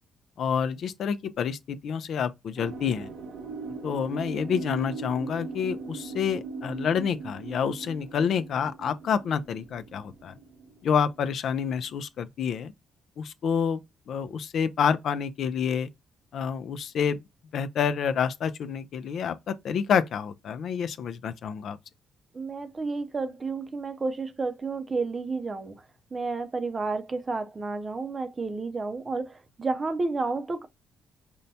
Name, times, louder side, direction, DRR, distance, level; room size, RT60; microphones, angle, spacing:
voice 1, 0.4-3.1 3.8-10.3 10.8-12.7 13.2-13.8 14.1-15.9 16.3-17.2 17.5-21.8, left 7 dB, 65° left, 0.4 m, -28 dB
sound 1, 2.6-11.9, right 4 dB, 85° right, 0.9 m, -39 dB
voice 2, 22.3-25.7 26.1-30.7, right 3 dB, 30° right, 0.5 m, -31 dB
5.3 x 2.1 x 2.7 m
cardioid pair, 90°, 0 cm